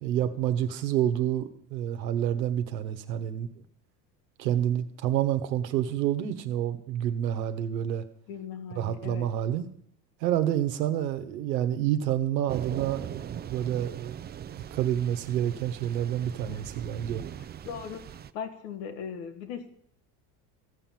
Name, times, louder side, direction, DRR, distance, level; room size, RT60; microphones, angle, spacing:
voice 1, 0.0-3.6 4.4-8.0 8.7-9.7 10.2-14.3 14.6-17.2, right 11 dB, 90° right, 8 dB, 1.2 m, -28 dB
voice 2, 8.3-9.3 16.5-16.6 17.6-19.7, left 7 dB, 80° left, 6 dB, 1.9 m, -39 dB
Thunder / Rain, 12.5-18.3, right 9 dB, 20° right, 0.4 m, -40 dB
15.0 x 5.7 x 7.5 m, 0.68 s
hypercardioid pair, 80°, 50 cm